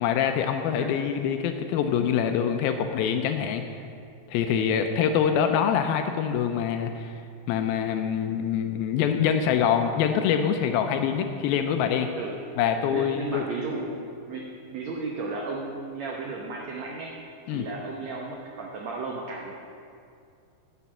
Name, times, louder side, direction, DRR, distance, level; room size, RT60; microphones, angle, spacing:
voice 1, 0.0-3.6 4.3-7.2 7.5-12.1 12.6-13.4 17.5-17.7, left 8 dB, 80° left, 6 dB, 2.3 m, -25 dB
voice 2, 12.9-14.4 14.7-17.1 17.5-19.5, right 3 dB, 85° right, -1 dB, 1.5 m, -34 dB
11.0 x 7.0 x 7.3 m, 2.4 s
omnidirectional pair, 4.6 m